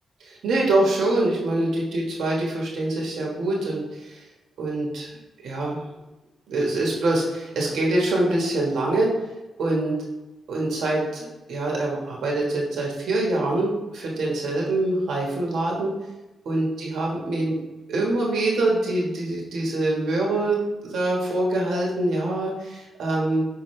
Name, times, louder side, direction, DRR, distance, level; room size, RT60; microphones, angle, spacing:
voice 1, 0.2-4.2 4.6-5.1 5.4-5.8 6.5-9.1 9.6-10.0 10.5-15.9 16.4-17.5 17.9-20.6 20.8-23.4, right 2 dB, 80° right, -2 dB, 1.4 m, -24 dB
6.3 x 5.6 x 3.3 m, 1.0 s
wide cardioid pair, 160°, 0 cm